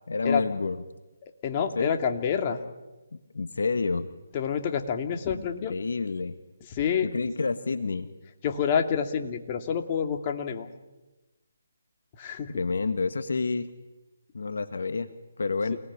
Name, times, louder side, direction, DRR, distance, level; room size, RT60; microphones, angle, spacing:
voice 1, 0.1-0.8 1.8-1.9 3.3-4.1 5.3-5.4 5.7-6.4 7.0-8.1 12.5-13.7 14.3-15.1 15.4-15.8, left 4 dB, 70° left, 10 dB, 1.5 m, -28 dB
voice 2, 1.4-2.6 4.3-5.8 6.6-7.1 8.4-10.7 12.1-12.6, left 7 dB, 30° left, 4 dB, 2.6 m, -28 dB
29.0 x 19.0 x 10.0 m, 1.1 s
figure-of-eight pair, 150°, 0 cm